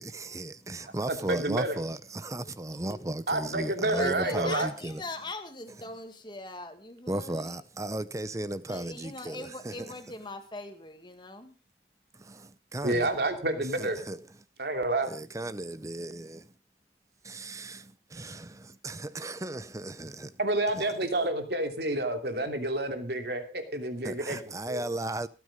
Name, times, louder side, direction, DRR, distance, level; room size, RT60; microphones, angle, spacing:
voice 1, 0.0-5.0 7.1-9.9 12.1-13.1 13.8-14.2 15.1-16.5 17.2-20.3 20.8-20.9 24.0-25.3, right 1 dB, 20° right, 0.6 m, -36 dB
voice 2, 1.1-1.8 3.3-4.7 12.8-14.0 14.6-15.1 20.4-24.4 24.7-24.8, right 2 dB, 60° right, 2.9 m, -29 dB
voice 3, 3.8-7.6 8.7-11.5, left 2 dB, 25° left, 2.0 m, -41 dB
18.0 x 9.6 x 5.1 m
head